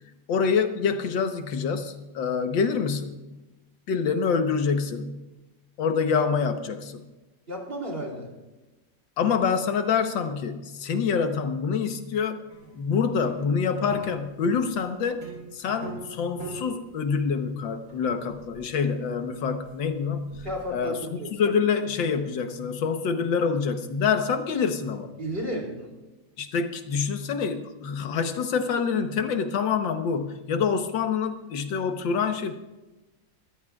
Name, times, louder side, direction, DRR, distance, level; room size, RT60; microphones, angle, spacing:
voice 1, 0.3-3.2 3.9-5.3 5.8-7.0 9.2-12.4 12.7-15.2 15.5-20.4 20.7-21.0 21.4-25.1 26.4-32.6, left 6 dB, 85° left, 7 dB, 1.8 m, -26 dB
voice 2, 7.5-8.3 20.4-21.3 25.2-25.9, equal, 30° right, 0 dB, 3.2 m, -33 dB
sound 1, 12.5-20.8, right 2 dB, 50° right, 4.8 m, -44 dB
23.0 x 14.0 x 2.4 m, 1.1 s
omnidirectional pair, 2.0 m